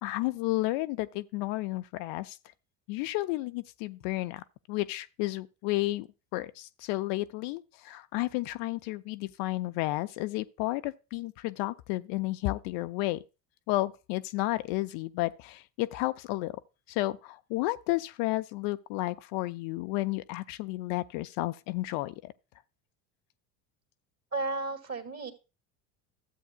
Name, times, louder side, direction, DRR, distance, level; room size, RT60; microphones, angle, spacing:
voice 1, 0.0-2.4 2.9-6.1 6.3-13.2 13.7-16.6 16.9-22.3, left 18 dB, 60° left, 0.6 m, -32 dB
voice 2, 24.3-25.3, right 3 dB, 30° right, 2.2 m, -33 dB
13.0 x 7.9 x 2.2 m
hypercardioid pair, 70°, 48 cm